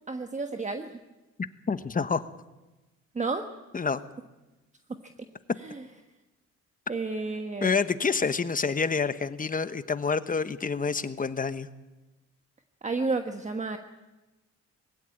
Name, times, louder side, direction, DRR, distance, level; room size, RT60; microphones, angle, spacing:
voice 1, 0.1-1.0 3.1-3.5 5.0-5.1 5.6-5.8 6.9-7.7 12.8-13.8, right 3 dB, 25° right, 6 dB, 1.3 m, -31 dB
voice 2, 1.4-2.3 3.7-4.0 7.6-11.7, left 5 dB, 25° left, 12 dB, 1.1 m, -28 dB
21.0 x 16.0 x 9.1 m, 1.1 s
cardioid pair, 90°, 30 cm